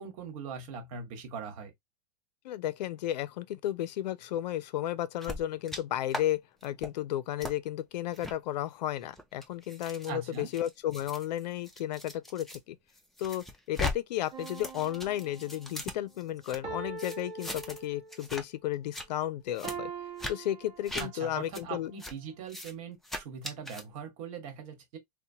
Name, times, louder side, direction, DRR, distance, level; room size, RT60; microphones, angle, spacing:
voice 1, 0.0-1.7 10.1-10.5 21.0-25.0, right 6 dB, 50° right, 1.3 m, -41 dB
voice 2, 2.4-12.8 13.2-19.9 20.3-21.9, left 12 dB, 80° left, 0.5 m, -33 dB
sound 1, 5.2-5.8 6.1-6.2 6.6-6.9 7.4-7.5 8.1-8.3 9.0-12.6 12.9-13.9 14.2-16.6 17.0-17.8 18.1-18.4 18.7-19.1 19.5-19.7 20.2-20.3 20.8-21.1 21.5-21.6 22.0-22.1 22.5-22.7 23.0-23.8, left 2 dB, ahead, 0.4 m, -39 dB
sound 2, 14.3-15.6 16.6-18.3 19.6-21.4 22.0-22.1, right 5 dB, 35° right, 0.8 m, -42 dB
2.9 x 2.2 x 2.7 m
supercardioid pair, 150°, 21 cm